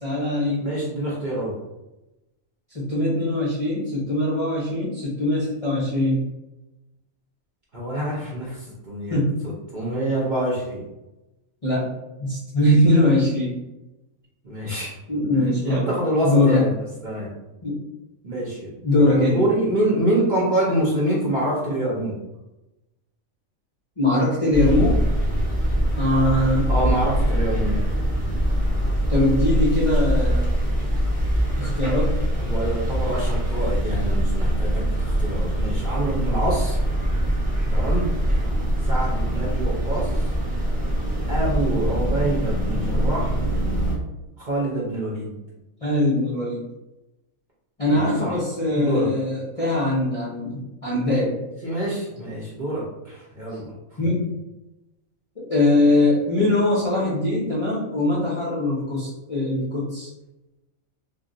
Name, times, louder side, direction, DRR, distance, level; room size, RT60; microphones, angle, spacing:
voice 1, 0.0-0.7 2.7-6.2 9.1-9.4 11.6-11.9 12.2-13.5 15.1-15.9 16.2-16.7 17.6-17.8 18.8-19.4 24.0-25.0 26.0-26.7 29.1-30.5 31.6-32.2 45.8-46.7 47.8-51.4 54.0-54.3 55.4-60.1, left 1 dB, 40° left, -7 dB, 0.5 m, -21 dB
voice 2, 0.6-1.6 7.7-10.8 14.4-14.9 15.3-16.7 17.0-17.3 18.2-22.2 26.7-27.8 32.4-36.8 37.7-38.1 38.8-40.3 41.3-43.4 44.4-45.4 47.9-48.4 48.7-49.1 51.6-53.7, right 1 dB, 45° right, -6 dB, 0.7 m, -26 dB
sound 1, 24.5-44.0, equal, 10° right, 0.5 m, -23 dB
2.4 x 2.2 x 3.7 m, 0.98 s
omnidirectional pair, 1.5 m